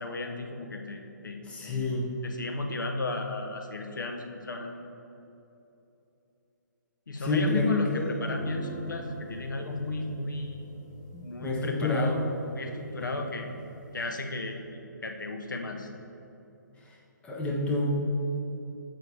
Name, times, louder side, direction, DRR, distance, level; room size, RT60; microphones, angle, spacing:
voice 1, 0.0-1.9 2.2-4.8 7.1-10.6 11.2-12.2 12.5-13.5 13.9-15.9, left 3 dB, 75° left, 3 dB, 1.0 m, -34 dB
voice 2, 1.4-2.1 7.2-8.2 11.1-12.4 13.0-13.1 16.7-17.0 17.2-17.9, left 2 dB, 10° left, -3 dB, 1.2 m, -29 dB
sound 1, 8.3-14.2, equal, 30° left, 1.2 m, -47 dB
13.5 x 6.0 x 3.6 m, 2.9 s
figure-of-eight pair, 140°, 10 cm